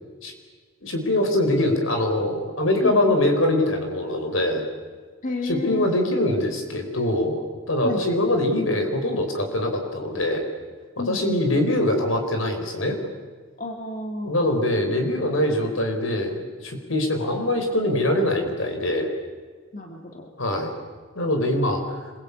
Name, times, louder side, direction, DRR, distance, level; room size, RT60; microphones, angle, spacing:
voice 1, 0.8-4.7 5.4-7.4 7.7-10.4 11.0-13.0 14.2-19.1 20.4-20.7 21.1-22.0, left 1 dB, 70° left, 4 dB, 5.0 m, -23 dB
voice 2, 2.8-3.2 5.2-5.9 7.8-8.0 11.0-11.7 13.6-14.4 19.7-20.3, left 2 dB, 40° left, 2 dB, 2.4 m, -31 dB
27.0 x 22.5 x 8.6 m, 1.6 s
head